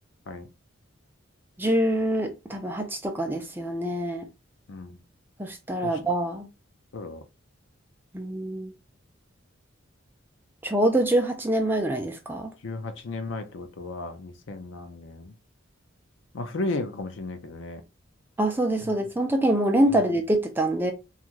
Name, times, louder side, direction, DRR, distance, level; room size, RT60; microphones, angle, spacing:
voice 1, 1.6-4.3 5.4-6.5 8.1-8.7 10.6-12.5 18.4-20.9, right 1 dB, 10° right, 0.3 m, -25 dB
voice 2, 12.6-15.3 16.3-17.8, left 2 dB, 65° left, 0.5 m, -34 dB
2.6 x 2.4 x 3.0 m
head